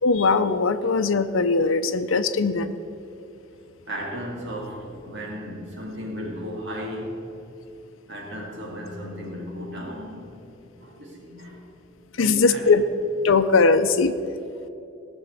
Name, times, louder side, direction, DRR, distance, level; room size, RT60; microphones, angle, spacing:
voice 1, 0.0-2.8 12.2-12.8 13.2-14.1, left 4 dB, 80° left, 9 dB, 0.6 m, -20 dB
voice 2, 3.9-7.2 8.1-10.4 10.8-11.6 12.2-12.7, equal, 60° right, -1 dB, 2.3 m, -35 dB
18.0 x 6.2 x 6.9 m, 2.9 s
head